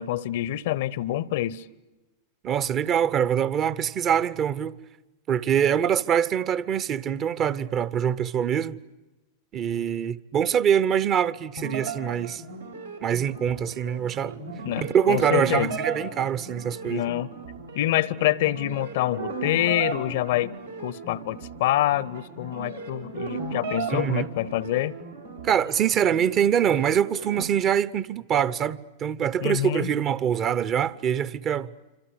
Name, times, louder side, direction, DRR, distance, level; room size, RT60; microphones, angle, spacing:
voice 1, 0.0-1.6 14.6-15.7 16.9-17.3 17.7-25.0 29.4-29.9, left 14 dB, 55° left, 0.9 m, -26 dB
voice 2, 2.4-4.8 5.3-8.8 9.5-12.4 13.0-14.4 14.8-17.0 23.9-24.3 25.4-31.7, right 8 dB, 30° right, 0.9 m, -24 dB
sound 1, 11.6-27.4, right 4 dB, 85° right, 5.7 m, -36 dB
27.0 x 26.5 x 8.1 m
figure-of-eight pair, 90°, 0 cm